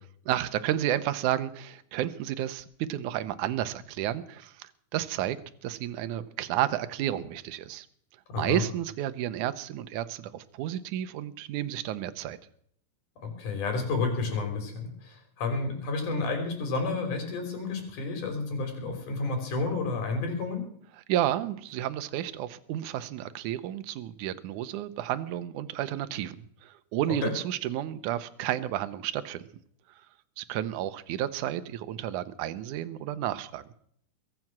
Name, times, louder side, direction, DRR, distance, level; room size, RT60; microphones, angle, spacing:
voice 1, 0.3-5.4 5.6-7.9 8.4-12.4 21.1-29.4 30.4-33.6, right 12 dB, 75° right, 12 dB, 2.2 m, -31 dB
voice 2, 8.3-8.6 13.2-20.7 27.2-27.3, left 3 dB, 65° left, 4 dB, 4.9 m, -31 dB
22.5 x 7.9 x 6.0 m, 0.65 s
omnidirectional pair, 3.8 m